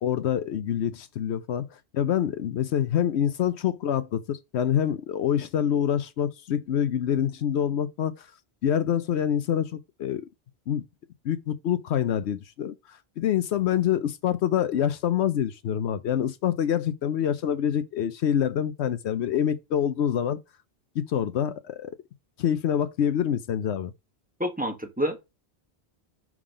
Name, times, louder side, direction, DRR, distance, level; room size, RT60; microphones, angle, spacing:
voice 1, 0.0-8.3 8.6-10.3 10.7-10.8 11.2-20.4 20.9-21.9 22.4-23.9, left 9 dB, 80° left, 0.9 m, -26 dB
voice 2, 24.4-25.2, equal, 10° right, 1.2 m, -28 dB
6.2 x 3.7 x 4.9 m
omnidirectional pair, 1.1 m